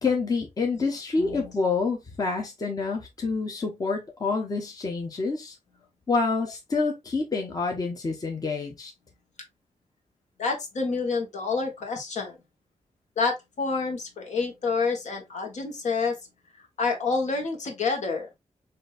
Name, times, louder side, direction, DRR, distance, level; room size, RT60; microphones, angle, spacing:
voice 1, 0.0-5.5 6.1-8.9, left 4 dB, 30° left, 0.9 m, -27 dB
voice 2, 1.2-1.5 6.4-6.5 10.4-12.4 13.2-16.2 16.8-18.3, left 4 dB, 70° left, 1.4 m, -28 dB
6.0 x 2.7 x 2.4 m
wide cardioid pair, 170°, 13 cm